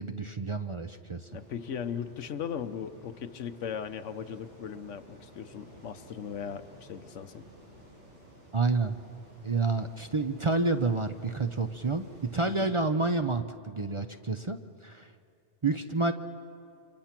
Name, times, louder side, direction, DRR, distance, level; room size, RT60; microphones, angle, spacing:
voice 1, 0.0-1.3 8.5-9.0 9.4-12.1 12.3-15.1 15.6-16.1, right 3 dB, 35° right, 7 dB, 0.6 m, -29 dB
voice 2, 1.3-7.5 12.5-12.7, left 7 dB, 90° left, 11 dB, 1.2 m, -38 dB
sound 1, 1.3-12.7, right 1 dB, 75° right, 7.9 m, -53 dB
29.0 x 26.0 x 5.9 m, 2.5 s
omnidirectional pair, 1.2 m